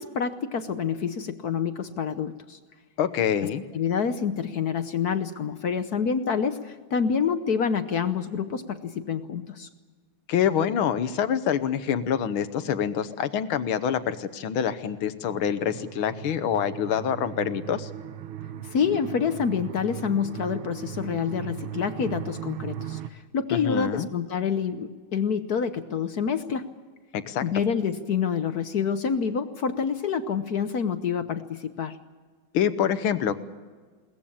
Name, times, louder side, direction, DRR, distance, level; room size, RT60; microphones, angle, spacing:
voice 1, 0.0-2.6 3.7-9.7 18.7-26.7 27.4-32.0, left 6 dB, 55° left, 10 dB, 1.2 m, -27 dB
voice 2, 3.0-3.6 10.3-17.9 23.5-24.1 27.1-27.4 32.5-33.4, left 8 dB, 75° left, 12 dB, 1.8 m, -26 dB
sound 1, 15.2-23.1, right 10 dB, 75° right, 1.7 m, -38 dB
22.0 x 19.0 x 8.7 m, 1.5 s
omnidirectional pair, 2.3 m